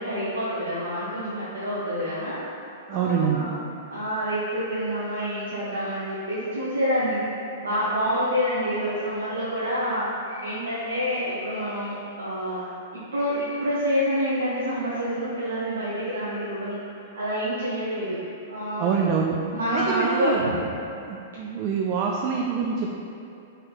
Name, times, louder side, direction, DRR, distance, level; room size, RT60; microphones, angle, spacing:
voice 1, 0.0-2.4 2.9-3.5 3.9-7.2 7.6-10.1 10.4-12.7 13.1-16.8 17.1-18.2 18.5-19.0 19.5-20.6, equal, 70° right, -9 dB, 0.7 m, -27 dB
voice 2, 2.9-3.5 18.8-19.4 19.7-20.4 21.1-22.9, right 6 dB, 40° right, 0 dB, 0.3 m, -25 dB
sound 1, 10.3-10.6 10.9-11.2 13.3-13.6 13.9-14.2, left 4 dB, 75° left, 0.9 m, -43 dB
3.9 x 3.3 x 4.0 m, 2.7 s
figure-of-eight pair, 100°, 0 cm